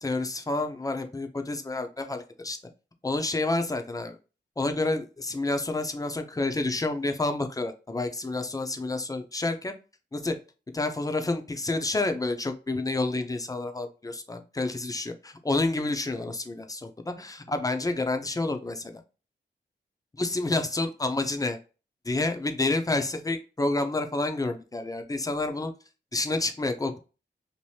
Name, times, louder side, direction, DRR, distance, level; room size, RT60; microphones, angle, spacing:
voice 1, 0.0-2.6 3.0-4.2 4.6-9.7 10.1-10.3 10.7-19.0 20.1-21.6 22.0-25.7 26.1-27.0, left 2 dB, 20° left, 6 dB, 0.6 m, -29 dB
2.8 x 2.6 x 3.2 m, 0.33 s
cardioid pair, 60°, 19 cm